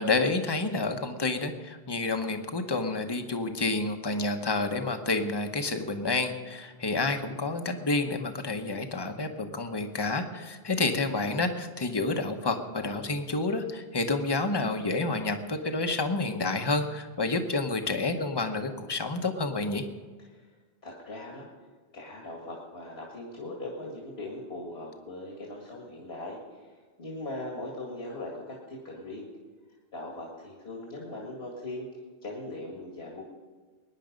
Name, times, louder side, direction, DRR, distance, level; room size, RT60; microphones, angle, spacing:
voice 1, 0.0-19.8, left 3 dB, 25° left, 6 dB, 1.0 m, -29 dB
voice 2, 20.8-21.5 21.9-26.7 27.0-29.2 29.9-31.9 32.2-33.2, left 2 dB, 75° left, -2 dB, 2.4 m, -40 dB
21.5 x 10.0 x 5.2 m, 1.5 s
omnidirectional pair, 1.1 m